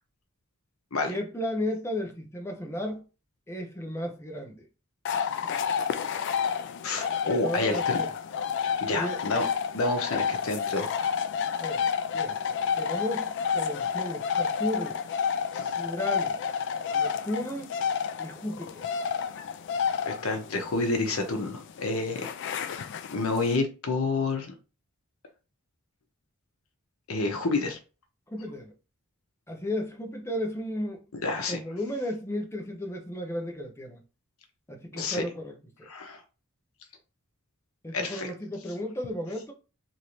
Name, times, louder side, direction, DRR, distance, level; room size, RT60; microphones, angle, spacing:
voice 1, 1.1-3.1 3.5-4.7 7.2-8.1 8.9-9.2 11.6-11.9 12.1-12.4 12.8-15.0 15.8-16.4 16.9-17.7 18.2-18.9 27.4-27.6 28.3-28.7 29.5-31.0 31.5-34.0 34.7-35.9 37.8-39.5, equal, 10° left, 0.6 m, -34 dB
sound 1, 5.0-23.5, left 7 dB, 55° left, 0.3 m, -30 dB
voice 2, 6.8-8.0 8.8-9.5 9.7-10.9 15.5-15.7 20.0-24.5 27.1-27.8 31.2-31.6 34.9-35.2 35.9-36.2 37.9-38.3, left 3 dB, 70° left, 0.7 m, -29 dB
3.0 x 2.6 x 3.0 m
head